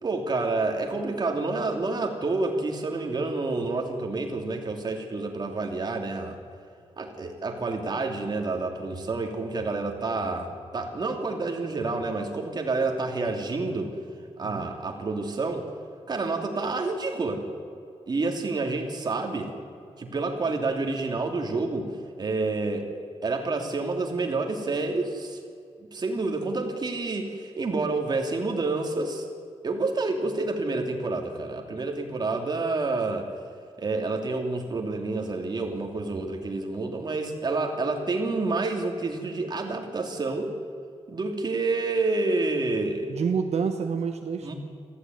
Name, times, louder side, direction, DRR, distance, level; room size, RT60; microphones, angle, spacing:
voice 1, 0.0-6.4 7.0-13.9 14.4-15.7 16.1-17.4 18.1-19.5 20.0-21.9 22.2-22.9 23.2-25.4 25.9-29.3 29.6-33.3 33.8-40.5 41.1-43.1 44.4-44.5, right 3 dB, 40° right, 3 dB, 2.9 m, -28 dB
voice 2, 43.1-44.5, right 6 dB, 70° right, 4 dB, 1.4 m, -28 dB
27.0 x 15.0 x 9.4 m, 2.5 s
wide cardioid pair, 175°, 11 cm